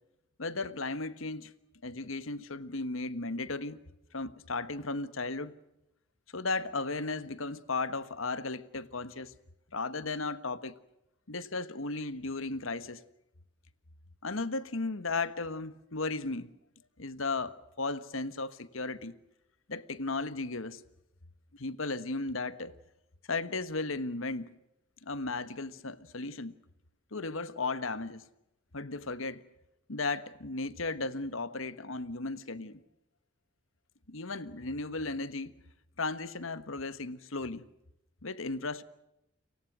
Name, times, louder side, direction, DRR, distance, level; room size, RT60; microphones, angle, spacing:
voice 1, 0.4-1.5 1.8-3.8 4.1-5.5 6.3-9.3 9.7-10.7 11.3-13.0 14.2-16.5 17.0-19.1 19.7-20.8 21.5-22.7 23.3-24.6 25.0-26.5 27.1-28.2 28.7-29.4 29.9-32.8 34.1-35.5 36.0-37.7 38.2-38.8, left 3 dB, 80° left, 1.4 m, -35 dB
30.0 x 24.5 x 6.2 m
head